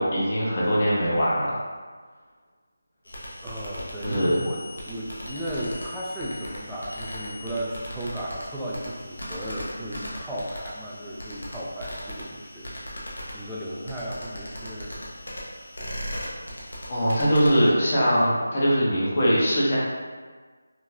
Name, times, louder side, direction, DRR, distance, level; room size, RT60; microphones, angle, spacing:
voice 1, 0.0-1.6 4.0-4.4 16.9-19.8, equal, 35° left, -7 dB, 0.8 m, -22 dB
sound 1, 3.1-17.7, equal, 85° left, 0.9 m, -38 dB
voice 2, 3.4-13.0 13.3-14.9, right 1 dB, 5° right, -8 dB, 0.3 m, -35 dB
3.0 x 2.6 x 2.2 m, 1.5 s
figure-of-eight pair, 165°, 0 cm